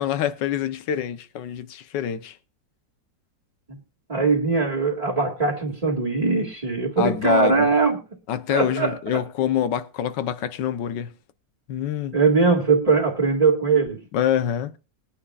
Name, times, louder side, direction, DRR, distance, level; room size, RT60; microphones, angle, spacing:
voice 1, 0.0-2.4 7.0-7.7 8.3-11.1 11.7-12.2 14.1-14.8, left 10 dB, 70° left, 1.5 m, -25 dB
voice 2, 4.1-8.0 8.5-9.2 12.1-14.0, right 4 dB, 20° right, 2.0 m, -21 dB
22.0 x 9.8 x 2.4 m
omnidirectional pair, 2.0 m